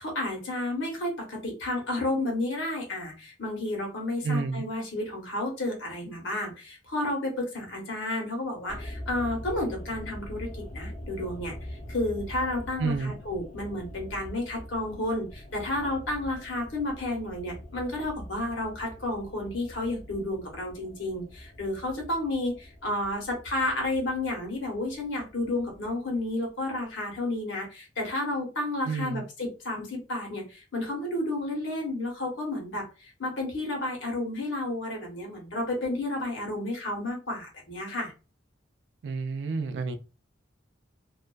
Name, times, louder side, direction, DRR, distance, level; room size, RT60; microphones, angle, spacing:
voice 1, 0.0-38.1, left 1 dB, 85° left, 1.0 m, -31 dB
voice 2, 4.2-4.6 12.8-13.1 28.8-29.2 39.0-40.0, right 4 dB, 65° right, 0.4 m, -29 dB
sound 1, 8.7-26.9 27.1-27.2, equal, 40° left, 0.5 m, -43 dB
2.4 x 2.3 x 2.3 m
head